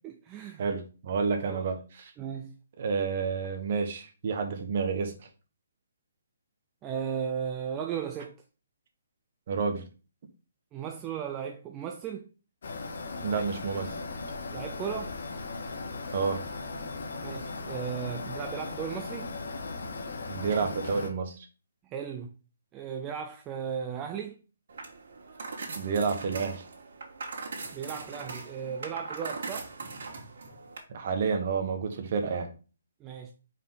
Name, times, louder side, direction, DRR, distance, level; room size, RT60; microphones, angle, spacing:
voice 1, 0.0-0.7 1.5-1.6 2.2-2.6 6.8-8.4 10.7-12.3 14.5-15.1 17.2-19.3 21.8-22.3 22.7-24.4 27.7-29.7 33.0-33.3, right 7 dB, 15° right, 0.4 m, -36 dB
voice 2, 0.6-1.8 2.8-5.1 9.5-9.8 13.2-14.0 16.1-16.4 20.3-21.4 25.7-26.6 30.9-32.5, right 5 dB, 35° right, 1.3 m, -29 dB
sound 1, 12.6-21.1, left 3 dB, 60° left, 1.4 m, -37 dB
sound 2, 24.7-30.8, right 4 dB, 55° right, 2.6 m, -40 dB
5.6 x 4.9 x 3.8 m
hypercardioid pair, 175°, 0 cm